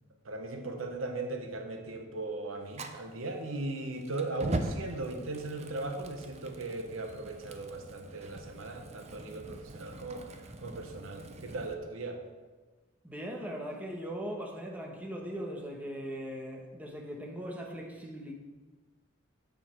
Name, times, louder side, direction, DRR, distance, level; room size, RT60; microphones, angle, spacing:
voice 1, 0.2-12.2, right 2 dB, 80° right, 5 dB, 1.0 m, -38 dB
Fire, 2.7-11.7, right 2 dB, 30° right, 0.6 m, -42 dB
voice 2, 13.0-18.3, equal, 10° right, -1 dB, 1.1 m, -39 dB
8.9 x 6.6 x 4.4 m, 1.3 s
head